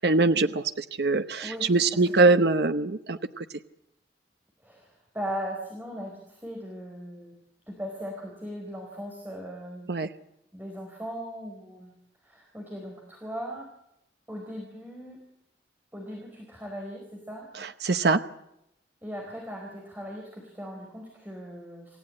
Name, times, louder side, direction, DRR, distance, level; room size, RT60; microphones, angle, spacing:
voice 1, 0.0-3.4 9.9-10.1 17.6-18.2, right 3 dB, 60° right, 10 dB, 0.8 m, -23 dB
voice 2, 1.4-2.4 4.6-7.4 7.7-9.9 10.5-11.9 12.2-13.7 14.3-15.2 15.9-17.5 19.0-22.0, equal, 10° right, 0 dB, 4.4 m, -38 dB
27.0 x 15.0 x 8.7 m, 0.82 s
head